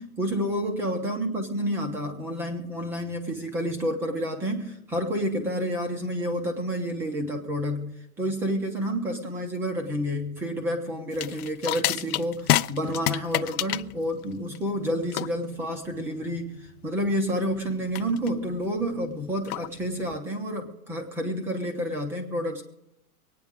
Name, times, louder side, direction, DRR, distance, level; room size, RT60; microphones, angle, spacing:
voice 1, 0.0-16.5 16.8-22.6, equal, 5° right, 3 dB, 0.6 m, -29 dB
sound 1, 11.1-20.2, left 15 dB, 80° left, 0.6 m, -30 dB
25.0 x 9.2 x 3.5 m, 0.87 s
supercardioid pair, 165°, 44 cm